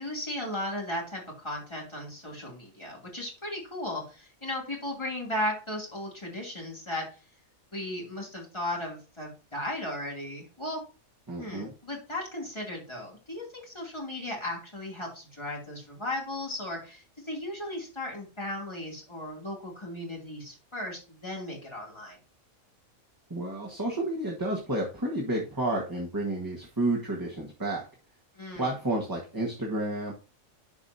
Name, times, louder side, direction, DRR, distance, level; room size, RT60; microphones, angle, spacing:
voice 1, 0.0-7.0 7.7-10.8 11.4-22.2 28.3-28.8, left 1 dB, 20° left, -2 dB, 2.7 m, -36 dB
voice 2, 11.3-11.7 23.3-27.8 28.5-30.1, right 1 dB, 15° right, -2 dB, 1.3 m, -31 dB
11.0 x 4.9 x 2.7 m, 0.34 s
omnidirectional pair, 1.4 m